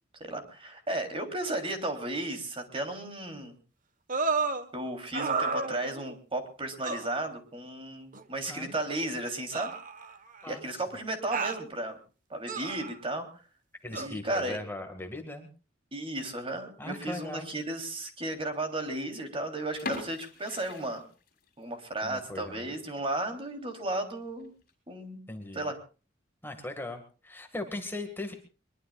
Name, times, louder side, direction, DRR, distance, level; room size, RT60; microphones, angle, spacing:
voice 1, 0.2-3.6 4.7-9.7 10.5-12.0 12.3-13.3 13.9-14.6 15.9-21.0 21.6-24.5 24.9-25.2 25.5-25.8, right 1 dB, 30° right, 6 dB, 3.4 m, -34 dB
sound 1, 4.1-4.7 5.1-6.2 6.8-7.1 8.1-8.2 9.5-10.4 11.3-11.6 12.5-13.0 13.9-14.1, right 4 dB, 45° right, 1.4 m, -31 dB
voice 2, 10.4-10.8 13.8-15.5 16.8-17.5 22.0-22.7 25.3-25.7 26.4-28.3, left 2 dB, 10° left, 5 dB, 2.0 m, -39 dB
sound 2, 19.8-21.6 22.0-22.1 22.6-22.8 23.2-23.3 23.5-23.6 24.4-24.7, left 2 dB, 50° left, 6.5 m, -40 dB
23.0 x 22.5 x 2.4 m, 0.37 s
head